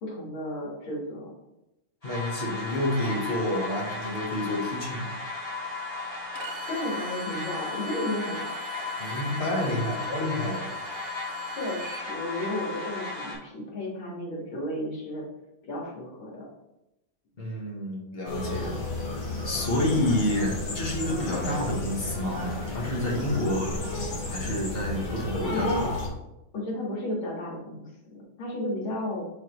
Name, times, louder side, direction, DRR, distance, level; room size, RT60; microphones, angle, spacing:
voice 1, 0.0-1.3 6.7-8.5 10.4-10.5 11.6-15.3 15.6-16.5 23.2-23.9 25.3-25.9 26.5-29.2, left 1 dB, 75° left, -3 dB, 2.6 m, -33 dB
voice 2, 2.0-5.1 9.0-10.7 17.4-18.8 19.4-23.7 24.3-25.9, left 1 dB, 35° left, -2 dB, 1.2 m, -29 dB
sound 1, 2.0-13.3, left 3 dB, 20° left, 2.3 m, -35 dB
Bowed string instrument, 6.3-12.1, right 3 dB, 65° right, 0.7 m, -43 dB
sound 2, 18.3-26.1, left 2 dB, 60° left, 1.9 m, -32 dB
5.7 x 5.4 x 3.1 m, 0.93 s
omnidirectional pair, 2.2 m